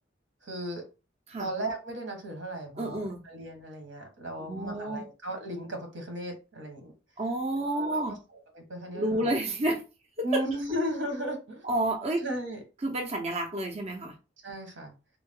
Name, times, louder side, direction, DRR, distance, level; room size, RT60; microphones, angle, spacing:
voice 1, 0.4-0.8 1.4-6.9 7.7-8.0 8.5-9.3 10.2-11.6 12.2-12.6 14.4-14.9, equal, 85° right, 1.4 m, -35 dB
voice 2, 2.8-3.3 4.4-5.0 7.2-8.2 8.9-9.8 10.2-10.4 11.6-12.3 12.8-14.1, right 1 dB, 35° right, 0.6 m, -30 dB
3.6 x 2.3 x 3.7 m
head